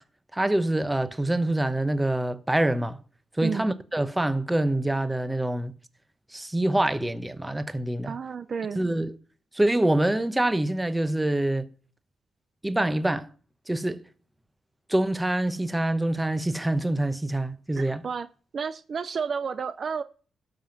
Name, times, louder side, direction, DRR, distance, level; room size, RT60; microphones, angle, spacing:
voice 1, 0.3-3.0 3.4-5.7 6.3-8.2 8.8-9.1 9.5-11.7 12.6-13.3 13.7-14.0 14.9-18.0, right 1 dB, 10° right, 0.9 m, -25 dB
voice 2, 3.4-3.7 8.1-8.8 17.8-18.3 18.5-20.0, right 6 dB, 50° right, 0.5 m, -31 dB
13.0 x 5.7 x 5.9 m
cardioid pair, 95°, 0 cm